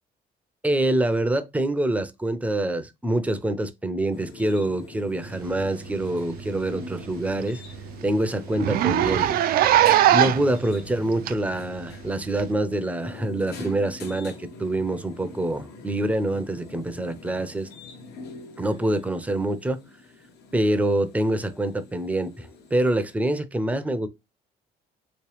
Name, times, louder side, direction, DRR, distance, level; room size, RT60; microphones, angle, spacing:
voice 1, 0.6-7.6 8.0-9.4 10.1-17.7 18.6-19.8 20.5-24.1, right 1 dB, 10° right, 0.5 m, -25 dB
sound 1, 4.1-23.2, left 3 dB, 75° left, 1.1 m, -44 dB
Zipper (clothing), 5.9-6.1 6.5-6.6 6.9-7.0 7.4-7.5 7.7-7.9 8.6-10.5 11.3-11.4 12.4-12.5, right 12 dB, 60° right, 0.4 m, -20 dB
3.1 x 3.0 x 3.1 m
cardioid pair, 110°, 17 cm